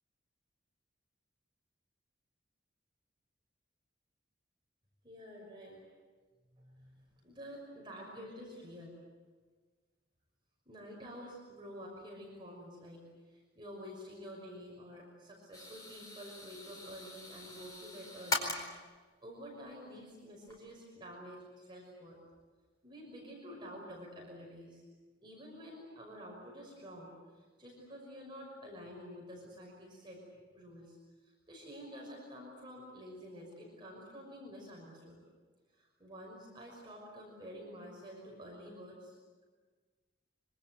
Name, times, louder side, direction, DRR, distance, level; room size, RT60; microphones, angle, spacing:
voice 1, 5.0-5.8 6.5-9.0 10.7-18.6 19.2-22.2 22.8-24.8 25.2-30.2 30.5-31.0 31.2-35.2 35.7-39.2, equal, 25° right, -2 dB, 6.0 m, -49 dB
sound 1, 15.5-18.6 19.8-20.0 20.5-20.6, left 1 dB, 20° left, 4.6 m, -40 dB
25.5 x 25.0 x 8.0 m, 1.4 s
head